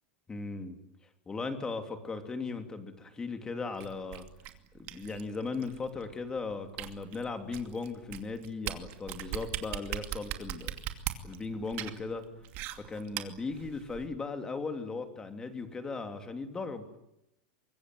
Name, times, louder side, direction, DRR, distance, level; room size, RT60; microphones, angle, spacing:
voice 1, 0.3-0.8 1.3-4.3 4.7-10.8 11.2-12.2 12.8-16.9, left 4 dB, 10° left, 7 dB, 3.0 m, -37 dB
sound 1, 3.8-14.1, right 14 dB, 40° right, 2.6 m, -40 dB
25.0 x 22.5 x 9.2 m, 0.82 s
supercardioid pair, 165°, 6 cm